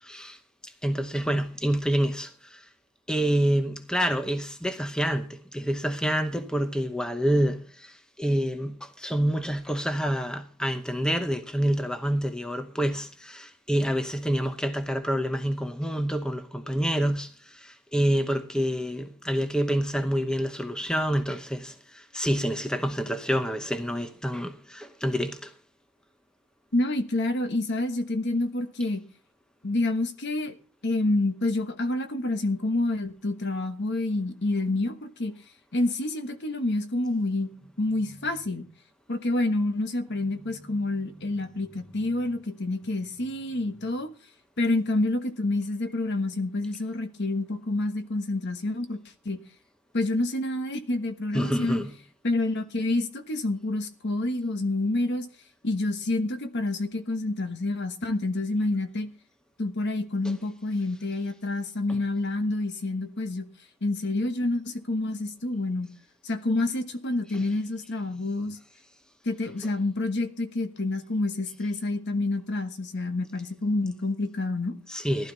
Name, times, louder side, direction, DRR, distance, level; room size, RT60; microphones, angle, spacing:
voice 1, 0.0-2.7 3.1-25.5 51.3-51.9 60.2-60.3 74.9-75.3, equal, 5° left, 0.8 m, -27 dB
voice 2, 26.7-29.0 29.6-30.5 30.8-35.3 35.7-37.5 37.8-38.7 39.1-44.1 44.6-49.0 49.2-49.4 49.9-51.7 52.2-55.3 55.6-59.1 59.6-63.4 63.8-65.9 66.2-68.6 69.2-74.8, left 2 dB, 50° left, 1.3 m, -28 dB
15.5 x 12.0 x 4.0 m
head